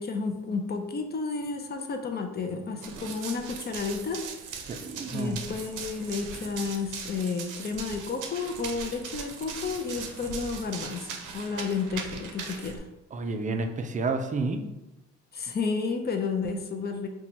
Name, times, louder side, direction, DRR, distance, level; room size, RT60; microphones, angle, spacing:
voice 1, 0.0-4.2 4.5-4.8 5.1-12.9 15.3-17.1, left 4 dB, 35° left, 5 dB, 0.5 m, -32 dB
Run, 2.8-12.8, right 6 dB, 85° right, 0.6 m, -39 dB
voice 2, 4.7-5.4 13.1-14.6, right 3 dB, 25° right, 6 dB, 0.4 m, -30 dB
2.8 x 2.3 x 4.2 m, 0.96 s
cardioid pair, 90°, 30 cm